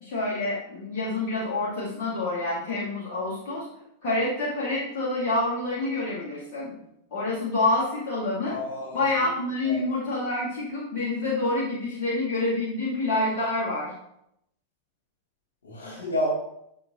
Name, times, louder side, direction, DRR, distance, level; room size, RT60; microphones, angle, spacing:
voice 1, 0.0-3.7 4.0-6.7 7.1-8.5 8.9-13.9, left 2 dB, 45° left, -7 dB, 2.2 m, -27 dB
voice 2, 8.5-9.3 9.6-9.8 15.6-16.3, left 1 dB, 70° left, -5 dB, 2.9 m, -31 dB
6.8 x 6.8 x 3.1 m, 0.78 s
figure-of-eight pair, 90°, 0 cm